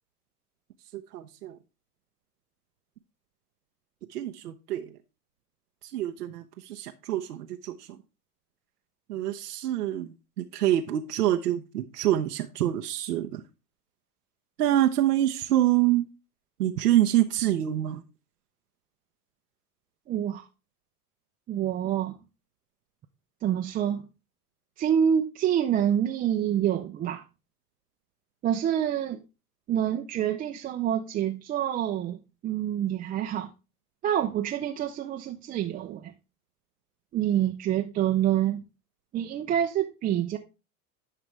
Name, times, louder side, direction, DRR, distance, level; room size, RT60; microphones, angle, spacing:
voice 1, 0.9-1.6 4.1-4.9 5.9-7.9 9.1-10.1 10.4-13.4 14.6-16.1 16.6-18.0, right 13 dB, 90° right, 0.7 m, -26 dB
voice 2, 20.1-20.5 21.5-22.2 23.4-24.1 24.8-27.2 28.4-29.2 29.7-33.5 34.0-36.1 37.1-38.6 39.1-40.4, right 10 dB, 20° right, 0.4 m, -27 dB
11.0 x 5.0 x 3.2 m
hypercardioid pair, 95°, 46 cm